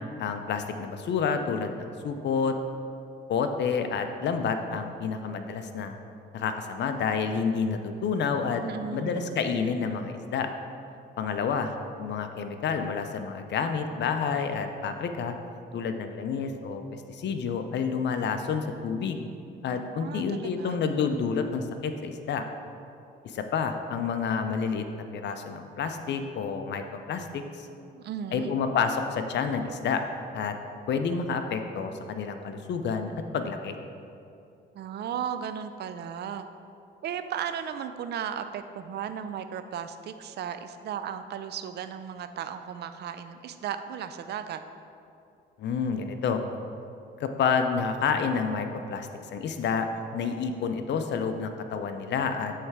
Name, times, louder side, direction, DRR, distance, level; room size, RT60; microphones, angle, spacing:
voice 1, 0.2-2.6 3.3-5.9 6.3-8.6 8.9-10.5 11.2-15.3 15.7-19.3 19.6-22.4 23.2-27.7 28.3-30.0 30.3-30.6 30.9-33.7 45.6-46.4 47.2-49.9 50.1-52.5, left 6 dB, 60° left, 7 dB, 0.5 m, -29 dB
voice 2, 8.6-9.2 19.9-20.8 27.9-28.6 34.7-36.5 37.0-44.6, right 8 dB, 55° right, 9 dB, 0.4 m, -35 dB
7.7 x 3.3 x 4.7 m, 2.6 s
cardioid pair, 90°, 20 cm